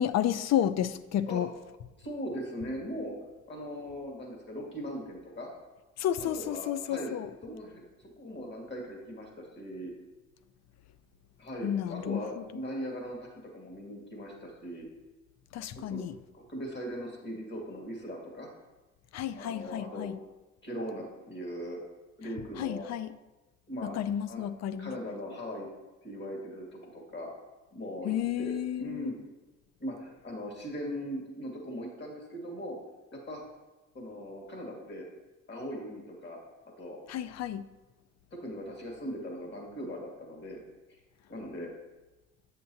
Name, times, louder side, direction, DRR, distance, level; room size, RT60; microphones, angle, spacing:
voice 1, 0.0-1.5 6.0-7.3 11.6-12.4 15.5-16.1 19.1-20.2 22.6-23.1 23.8-24.9 28.0-29.1 37.1-37.6, left 10 dB, 60° left, 14 dB, 0.4 m, -31 dB
voice 2, 2.0-3.1 3.5-5.5 6.4-7.1 7.4-7.8 8.2-9.9 11.4-13.3 13.5-14.9 15.7-16.0 16.3-18.5 19.3-20.1 20.6-21.8 22.2-22.9 23.7-23.9 24.2-24.4 24.8-25.7 26.0-27.3 27.7-29.2 29.8-32.8 33.3-33.4 33.9-35.0 35.5-37.0 38.3-40.6 41.3-41.7, equal, 35° left, -1 dB, 2.2 m, -39 dB
7.8 x 6.7 x 2.7 m, 1.1 s
cardioid pair, 90°, 30 cm